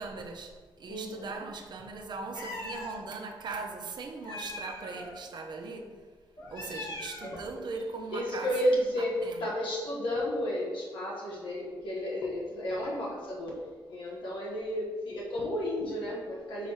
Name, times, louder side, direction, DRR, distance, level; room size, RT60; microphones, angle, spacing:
voice 1, 0.0-5.9 6.5-8.5 9.0-9.4, right 4 dB, 60° right, 3 dB, 0.8 m, -39 dB
voice 2, 0.9-1.4 7.2-7.5 8.1-9.1 9.4-13.6 13.9-16.7, equal, 80° left, -4 dB, 1.4 m, -32 dB
Meow, 2.3-3.0 4.2-5.1 6.4-7.5, left 2 dB, 45° left, 1.4 m, -41 dB
5.7 x 3.1 x 5.6 m, 1.5 s
cardioid pair, 110°, 8 cm